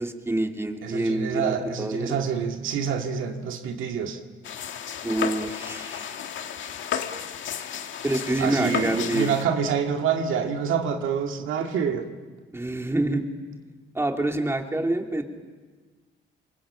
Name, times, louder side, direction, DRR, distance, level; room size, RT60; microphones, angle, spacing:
voice 1, 0.0-2.2 5.0-6.2 8.0-9.4 12.5-13.3 13.9-15.2, right 1 dB, 10° right, 3 dB, 2.9 m, -27 dB
voice 2, 0.8-4.2 8.4-12.1, right 7 dB, 80° right, 4 dB, 2.0 m, -27 dB
sound 1, 4.4-9.4, left 8 dB, 75° left, 2.0 m, -33 dB
26.0 x 22.0 x 8.7 m, 1.4 s
cardioid pair, 90°, 20 cm